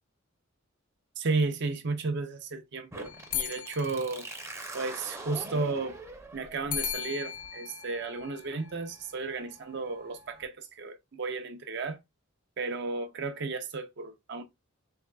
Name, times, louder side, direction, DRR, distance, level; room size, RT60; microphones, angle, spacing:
voice 1, 1.2-4.3 4.7-6.0 6.3-12.0 12.6-14.4, right 3 dB, 55° right, 0.5 m, -33 dB
sound 1, 2.9-10.4, right 2 dB, 15° right, 0.6 m, -46 dB
sound 2, 3.0-5.0 6.7-9.1, left 9 dB, 40° left, 0.5 m, -38 dB
3.4 x 3.3 x 2.3 m
head